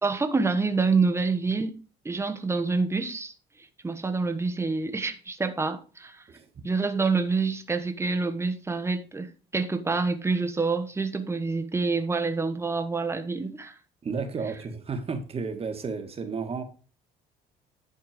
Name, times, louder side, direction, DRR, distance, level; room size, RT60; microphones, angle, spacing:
voice 1, 0.0-1.7 2.0-3.3 3.8-6.2 6.6-13.8, right 4 dB, 15° right, 1.2 m, -27 dB
voice 2, 14.0-16.6, right 5 dB, 35° right, 1.7 m, -32 dB
11.0 x 4.5 x 5.1 m
cardioid pair, 110°, 17 cm